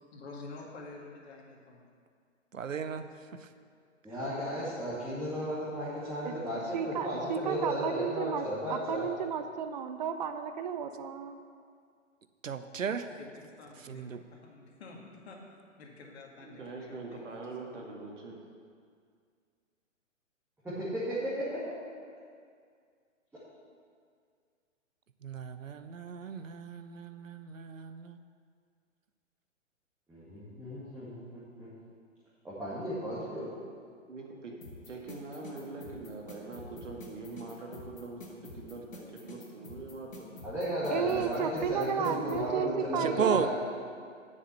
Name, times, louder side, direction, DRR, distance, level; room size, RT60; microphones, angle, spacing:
voice 1, 0.1-1.9 13.1-15.4 15.8-17.5, left 3 dB, 55° left, -1 dB, 2.1 m, -49 dB
voice 2, 2.5-3.1 12.4-13.1 13.8-14.2 25.2-28.2 43.0-43.5, right 7 dB, 80° right, 10 dB, 0.7 m, -34 dB
voice 3, 4.0-9.1 20.6-21.6 30.1-31.7 32.4-33.5 40.4-43.5, equal, 5° right, -11 dB, 2.0 m, -35 dB
voice 4, 6.7-11.4 40.9-43.5, right 7 dB, 35° right, 8 dB, 0.6 m, -33 dB
voice 5, 16.4-18.4 34.1-34.5 34.9-40.4, right 3 dB, 65° right, -1 dB, 2.2 m, -43 dB
sound 1, 34.6-42.4, left 1 dB, 80° left, 2.3 m, -47 dB
7.3 x 6.5 x 7.8 m, 2.1 s
figure-of-eight pair, 125°, 39 cm